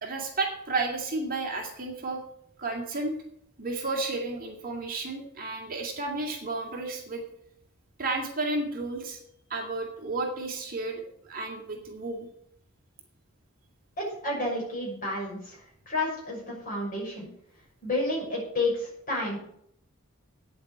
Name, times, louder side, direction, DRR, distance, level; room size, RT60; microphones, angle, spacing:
voice 1, 0.0-2.2 2.6-3.2 3.6-7.2 8.0-9.2 9.5-12.3, right 3 dB, 40° right, 0 dB, 2.4 m, -32 dB
voice 2, 14.0-15.6 15.9-17.3 17.8-19.5, left 2 dB, 40° left, -3 dB, 5.9 m, -30 dB
9.4 x 7.8 x 8.0 m, 0.71 s
head